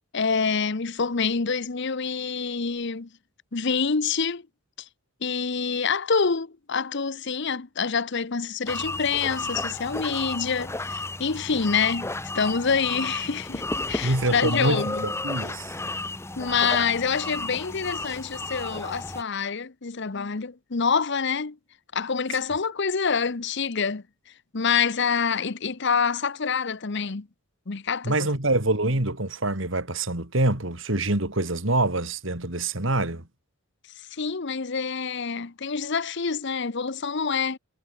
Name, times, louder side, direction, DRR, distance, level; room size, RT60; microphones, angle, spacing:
voice 1, 0.1-3.1 3.5-4.4 5.2-15.1 16.4-21.6 21.9-24.0 24.5-27.3 27.7-28.3 34.1-37.6, left 5 dB, 55° left, 0.9 m, -26 dB
sound 1, 8.7-19.2, left 2 dB, 10° left, 1.1 m, -33 dB
voice 2, 14.0-15.7 28.0-33.2, right 2 dB, 65° right, 3.2 m, -25 dB
head